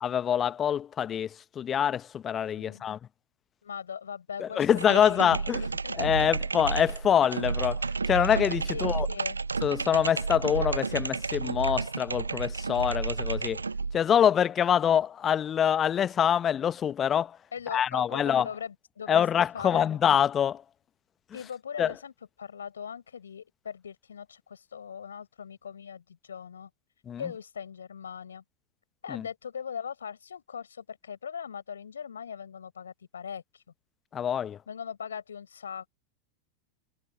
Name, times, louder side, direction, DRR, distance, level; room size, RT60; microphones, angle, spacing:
voice 1, 0.0-3.0 4.4-5.6 5.9-9.1 9.6-13.6 13.9-17.4 17.7-18.5 19.1-20.6 21.8-21.9 27.1-27.3 29.1-29.3 34.1-34.6, left 9 dB, 25° left, 1.1 m, -25 dB
voice 2, 2.6-2.9 3.6-4.6 4.9-6.3 8.7-9.4 17.5-19.2 19.5-20.0 21.3-22.1 22.4-26.7 27.2-28.4 29.0-33.6 34.7-35.9, left 7 dB, 70° left, 5.2 m, -40 dB
sound 1, 4.7-14.0, right 4 dB, 75° right, 1.0 m, -31 dB
figure-of-eight pair, 90°, 0 cm